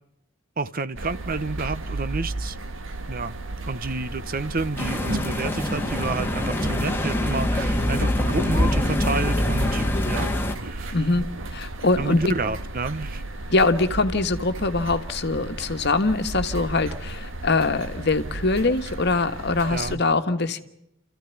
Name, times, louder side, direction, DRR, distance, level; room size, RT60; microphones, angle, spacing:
voice 1, 0.6-2.6 3.1-3.4 3.6-10.3 10.6-11.1 12.0-13.2 19.7-20.0, right 3 dB, 45° right, 14 dB, 0.9 m, -30 dB
sound 1, 1.0-20.0, right 2 dB, 75° right, 1.5 m, -34 dB
sound 2, 4.8-10.5, left 1 dB, 10° left, 1.9 m, -24 dB
voice 2, 10.9-11.3 11.5-12.2 13.5-20.6, left 3 dB, 55° left, 8 dB, 1.5 m, -23 dB
29.0 x 14.5 x 9.2 m, 0.80 s
head